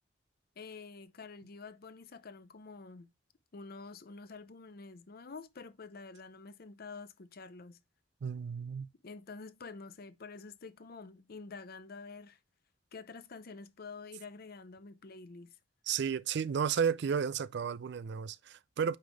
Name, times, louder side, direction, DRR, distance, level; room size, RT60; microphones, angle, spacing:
voice 1, 0.6-3.1 3.5-7.8 9.0-12.4 12.9-15.6, left 4 dB, 55° left, 0.7 m, -48 dB
voice 2, 8.2-8.9 15.9-19.0, right 7 dB, 65° right, 0.4 m, -33 dB
9.0 x 3.3 x 3.4 m
head